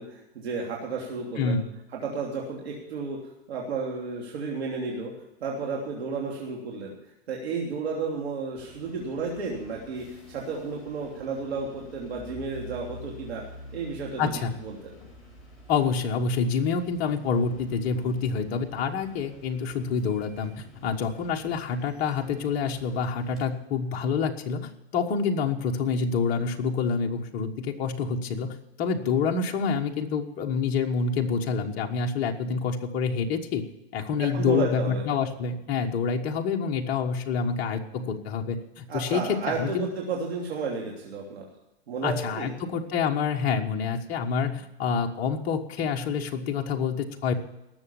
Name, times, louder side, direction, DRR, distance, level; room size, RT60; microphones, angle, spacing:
voice 1, 0.0-1.6 1.9-3.2 3.5-5.1 5.4-6.9 7.3-13.4 13.7-14.3 14.6-14.9 34.2-35.0 38.9-41.5 41.9-42.5, right 4 dB, 75° right, -1 dB, 3.2 m, -32 dB
voice 2, 1.4-1.7 14.2-14.6 15.7-33.6 33.9-39.8 42.0-47.3, left 5 dB, 25° left, 1 dB, 1.3 m, -27 dB
sound 1, 8.5-23.4, left 1 dB, ahead, 5.1 m, -48 dB
19.0 x 7.2 x 7.1 m, 0.91 s
hypercardioid pair, 155°, 32 cm